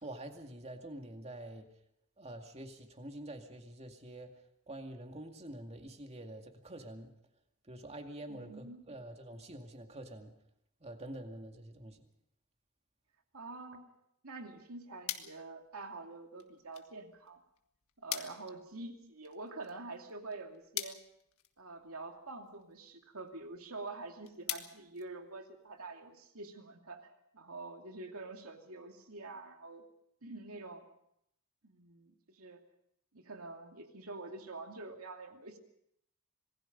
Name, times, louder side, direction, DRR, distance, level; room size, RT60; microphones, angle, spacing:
voice 1, 0.0-1.7 2.2-4.3 4.7-7.1 7.6-10.3 10.8-12.1, right 1 dB, 30° right, 4 dB, 2.3 m, -46 dB
voice 2, 8.3-8.9 13.3-13.9 14.2-17.4 18.0-21.0 21.6-29.8 30.2-30.9 31.6-32.6 33.1-35.6, right 3 dB, 70° right, 4 dB, 2.7 m, -46 dB
sound 1, 14.3-25.8, left 11 dB, 70° left, 1.6 m, -47 dB
26.5 x 20.0 x 5.4 m, 0.74 s
head